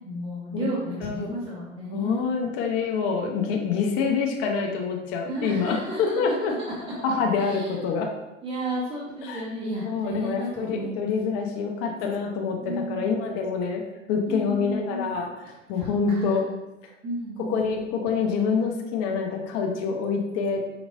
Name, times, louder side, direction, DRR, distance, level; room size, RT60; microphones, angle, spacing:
voice 1, 0.0-2.2 4.6-4.7 5.3-6.5 6.8-6.9 7.4-7.7 8.4-11.1 12.6-13.2 14.3-15.1 15.7-16.5 17.0-17.9, right 1 dB, 15° right, -6 dB, 0.8 m, -33 dB
voice 2, 1.0-1.3 1.9-6.6 7.0-8.1 9.2-9.4 9.9-13.8 14.1-16.4 17.5-20.6, left 5 dB, 40° left, 1 dB, 0.7 m, -26 dB
5.1 x 3.0 x 2.6 m, 0.99 s
hypercardioid pair, 100°, 39 cm